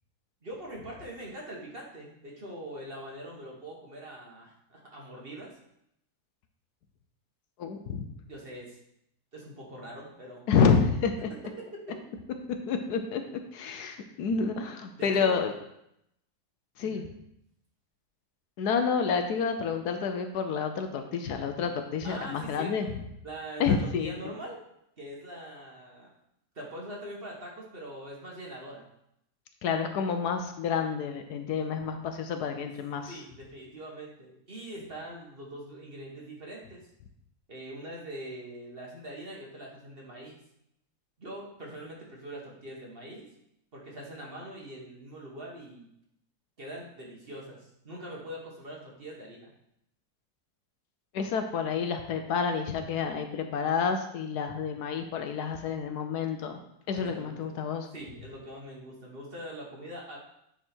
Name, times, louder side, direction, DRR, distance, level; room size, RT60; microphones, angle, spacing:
voice 1, 0.4-5.5 8.2-8.8 9.3-10.5 11.3-11.8 15.0-15.5 16.8-17.1 22.0-22.7 23.2-24.6 25.0-26.1 26.5-28.8 33.1-36.9 37.5-40.4 41.2-43.3 43.7-45.9 46.6-49.5 56.9-57.5 57.9-60.2, right 1 dB, 35° right, -2 dB, 1.4 m, -43 dB
voice 2, 7.6-8.0 10.5-11.3 12.7-13.2 13.5-15.5 16.8-17.0 18.6-22.9 23.6-24.1 29.6-33.2 51.1-56.6 56.9-57.9, left 6 dB, 70° left, 6 dB, 1.2 m, -29 dB
9.3 x 3.6 x 4.4 m, 0.77 s
omnidirectional pair, 1.8 m